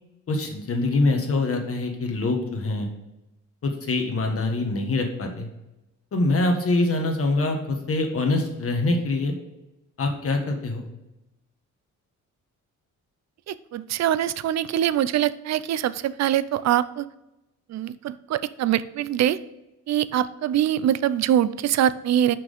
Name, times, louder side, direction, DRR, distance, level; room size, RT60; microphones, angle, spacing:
voice 1, 0.3-2.9 3.6-5.5 6.1-9.3 10.0-10.8, left 2 dB, 45° left, 3 dB, 1.4 m, -24 dB
voice 2, 13.5-17.1 17.7-19.4 19.9-22.3, right 11 dB, 60° right, 17 dB, 0.5 m, -23 dB
6.0 x 6.0 x 5.1 m, 0.94 s
cardioid pair, 120°, 31 cm